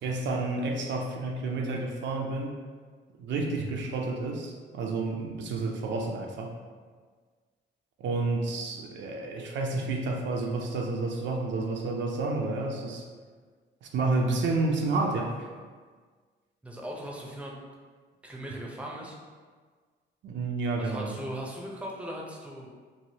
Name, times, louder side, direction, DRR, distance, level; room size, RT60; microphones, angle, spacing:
voice 1, 0.0-2.5 3.2-6.6 8.0-13.1 13.8-15.5 20.2-21.2, right 3 dB, 65° right, 1 dB, 0.5 m, -30 dB
voice 2, 16.6-17.5 18.2-19.2 20.8-22.7, equal, 5° right, -2 dB, 0.6 m, -38 dB
3.0 x 2.7 x 2.7 m, 1.5 s
cardioid pair, 90°, 20 cm